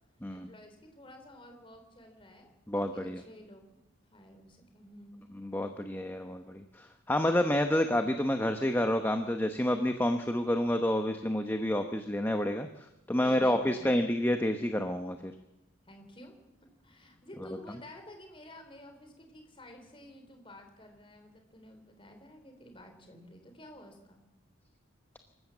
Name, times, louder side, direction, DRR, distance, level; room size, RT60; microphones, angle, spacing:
voice 1, 0.3-3.8 4.1-5.3 13.2-14.3 15.9-16.4 16.8-24.2, left 1 dB, 25° left, 5 dB, 4.0 m, -51 dB
voice 2, 2.7-3.2 5.4-15.3, left 1 dB, 10° left, 6 dB, 1.0 m, -29 dB
26.0 x 14.5 x 7.4 m, 0.94 s
head